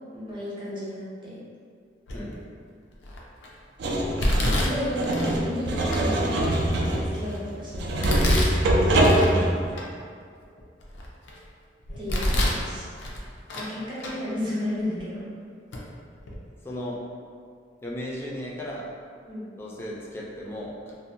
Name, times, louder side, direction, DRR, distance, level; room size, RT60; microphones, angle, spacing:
voice 1, 0.1-1.4 4.4-8.1 12.0-12.9 13.5-15.3 19.3-19.5, left 1 dB, 30° right, -9 dB, 0.7 m, -33 dB
Domestic sounds home sounds, 2.1-2.5 3.0-3.5 4.2-5.4 5.9-6.0 6.6-7.4 8.0-9.3 9.7-9.8 10.4-11.4 11.9-12.6 13.0-13.7 14.0-14.1 15.0-15.1 15.7-15.8 16.2-16.4, left 1 dB, 80° left, 0.4 m, -27 dB
sound 1, 3.8-9.7, right 1 dB, 65° right, 0.4 m, -23 dB
voice 2, 16.6-17.0 17.8-18.9 19.6-20.9, left 1 dB, 15° left, -4 dB, 0.4 m, -35 dB
2.5 x 2.1 x 2.6 m, 2.2 s
head